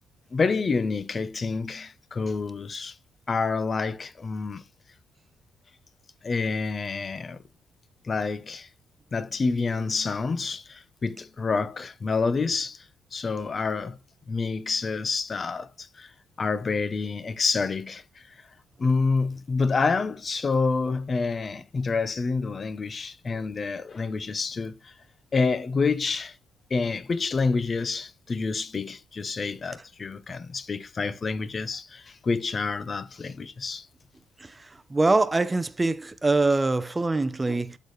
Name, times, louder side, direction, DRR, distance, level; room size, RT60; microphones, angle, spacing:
voice 1, 0.3-2.9 3.3-4.6 6.2-7.4 8.0-8.7 9.1-12.8 13.1-14.0 14.3-16.1 16.4-18.2 18.8-24.9 25.3-26.4 26.7-33.9 37.5-37.6, left 4 dB, 35° left, 0.8 m, -28 dB
voice 2, 34.9-37.8, right 3 dB, 20° right, 0.7 m, -23 dB
11.5 x 4.0 x 3.2 m
cardioid pair, 90°, 0 cm